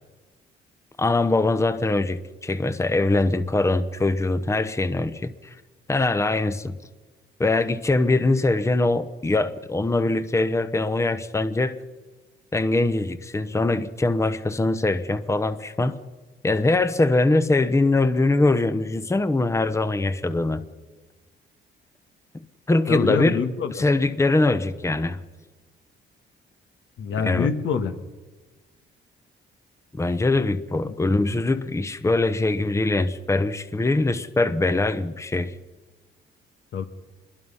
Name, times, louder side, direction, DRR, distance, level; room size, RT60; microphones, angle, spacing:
voice 1, 1.0-5.6 5.9-6.8 7.4-11.8 12.5-16.0 16.4-20.6 22.7-23.4 23.7-25.2 27.2-27.5 30.0-35.5, left 2 dB, 15° left, 1.0 m, -22 dB
voice 2, 22.9-23.8 27.0-27.9 36.7-36.8, left 6 dB, 70° left, 1.8 m, -25 dB
26.0 x 22.0 x 5.6 m
cardioid pair, 90°, 20 cm